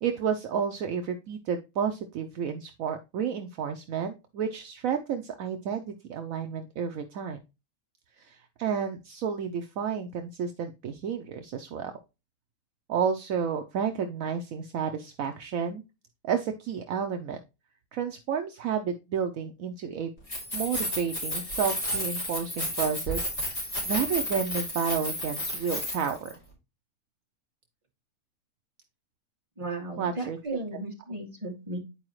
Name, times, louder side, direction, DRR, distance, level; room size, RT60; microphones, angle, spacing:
voice 1, 0.0-7.4 8.2-11.9 12.9-15.8 16.2-17.4 17.9-20.1 20.5-26.3 30.0-30.4, right 7 dB, 70° right, 6 dB, 1.0 m, -31 dB
Keys jangling, 20.2-26.3, equal, 45° left, 3.5 m, -32 dB
voice 2, 29.6-31.8, right 2 dB, 20° right, -3 dB, 2.3 m, -35 dB
9.7 x 4.7 x 3.1 m, 0.27 s
omnidirectional pair, 1.6 m